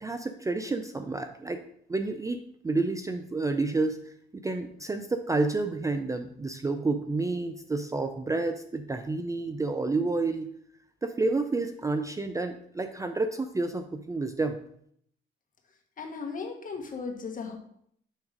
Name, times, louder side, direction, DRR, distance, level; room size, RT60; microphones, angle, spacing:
voice 1, 0.0-1.6 1.9-10.5 11.0-14.6, right 3 dB, 15° right, 7 dB, 0.4 m, -30 dB
voice 2, 16.0-17.6, left 5 dB, 45° left, 3 dB, 1.4 m, -36 dB
6.4 x 3.5 x 5.0 m, 0.68 s
cardioid pair, 90°, 20 cm